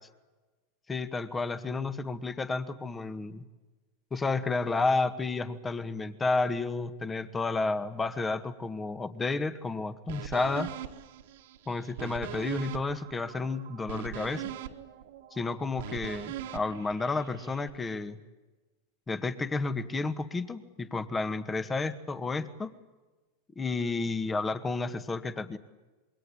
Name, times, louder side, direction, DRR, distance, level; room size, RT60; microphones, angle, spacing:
voice 1, 0.9-3.4 4.1-10.7 11.7-14.5 15.3-18.2 19.1-22.7 23.6-25.6, left 3 dB, 20° left, 11 dB, 1.9 m, -31 dB
sound 1, 10.1-17.7, right 10 dB, 70° right, 2.1 m, -41 dB
26.5 x 22.5 x 8.8 m, 1.2 s
hypercardioid pair, 95°, 0 cm